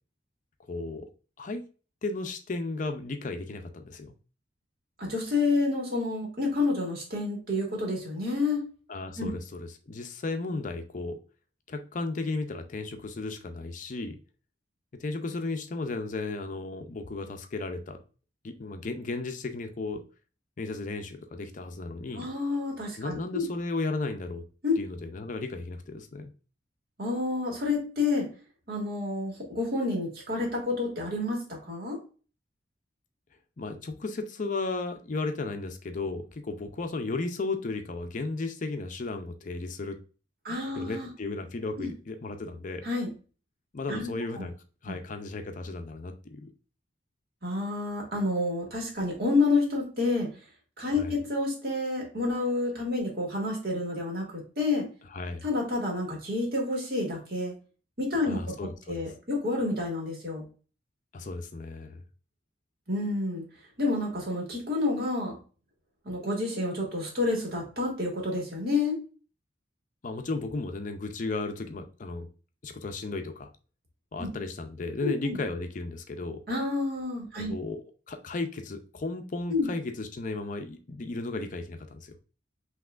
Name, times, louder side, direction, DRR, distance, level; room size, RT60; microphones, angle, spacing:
voice 1, 0.7-1.1 1.4-1.6 2.0-4.1 8.9-11.2 11.7-14.2 15.0-18.0 18.4-20.0 20.6-22.3 23.0-24.4 24.8-26.3 33.6-40.0 40.8-42.8 43.7-44.5 44.8-46.5 50.9-51.2 55.1-55.4 58.3-59.1 61.1-62.0 70.0-72.3 72.6-73.5 74.1-76.4 77.4-82.1, left 3 dB, 45° left, 6 dB, 0.5 m, -34 dB
voice 2, 5.0-8.6 9.2-9.4 22.1-23.5 24.6-24.7 27.0-28.3 28.7-32.0 40.4-41.1 41.8-41.9 42.8-43.1 43.9-44.1 44.4-44.5 44.9-45.0 47.4-50.3 50.8-54.9 55.4-57.5 58.0-58.4 58.9-60.4 62.9-63.4 63.8-65.4 66.1-69.0 74.2-74.3 75.0-75.4 76.5-77.5 79.5-79.7, left 3 dB, 55° right, -1 dB, 1.8 m, -29 dB
5.6 x 2.9 x 2.4 m, 0.36 s
head